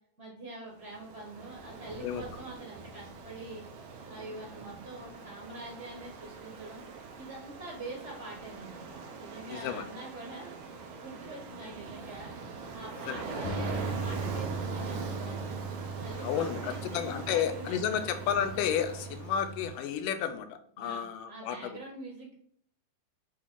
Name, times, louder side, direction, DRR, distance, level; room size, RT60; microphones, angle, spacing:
voice 1, 0.2-3.7 4.1-6.8 7.2-8.8 9.2-10.6 11.0-12.3 12.7-15.3 16.0-18.0 20.8-22.3, right 2 dB, 40° right, -2 dB, 1.0 m, -45 dB
Ocean, 0.8-19.9, right 4 dB, 90° right, 2.5 m, -42 dB
voice 2, 9.5-9.9 13.1-13.3 16.2-21.8, left 9 dB, 90° left, 9 dB, 2.3 m, -32 dB
Bass guitar, 13.4-19.7, right 3 dB, 70° left, 2.5 m, -39 dB
7.8 x 3.1 x 3.9 m, 0.63 s
omnidirectional pair, 3.7 m